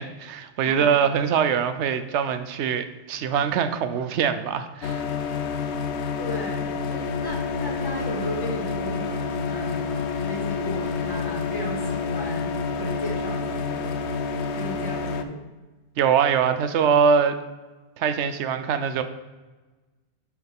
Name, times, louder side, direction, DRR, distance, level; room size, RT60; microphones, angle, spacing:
voice 1, 0.0-5.0 16.0-17.3 18.0-19.0, right 7 dB, 80° right, 10 dB, 0.9 m, -23 dB
sound 1, 4.8-15.2, left 5 dB, 80° left, 0.9 m, -28 dB
voice 2, 6.2-14.0 14.5-15.4, left 1 dB, 20° left, -1 dB, 1.3 m, -35 dB
9.3 x 4.7 x 3.5 m, 1.2 s
omnidirectional pair, 1.2 m